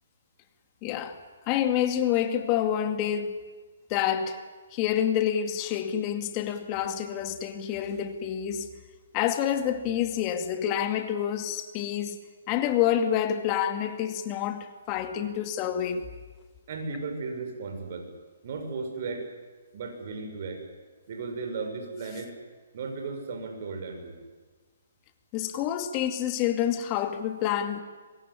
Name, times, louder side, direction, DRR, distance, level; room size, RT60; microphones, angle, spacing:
voice 1, 0.8-1.2 1.5-3.4 3.9-4.4 4.7-8.7 9.1-12.2 12.5-16.1 25.3-27.8, left 10 dB, 25° left, 2.3 m, -28 dB
voice 2, 16.7-18.1 18.4-19.2 19.7-20.6 21.1-22.3 22.7-24.2, right 4 dB, 50° right, 6.4 m, -35 dB
25.0 x 21.5 x 10.0 m
hypercardioid pair, 150°, 0 cm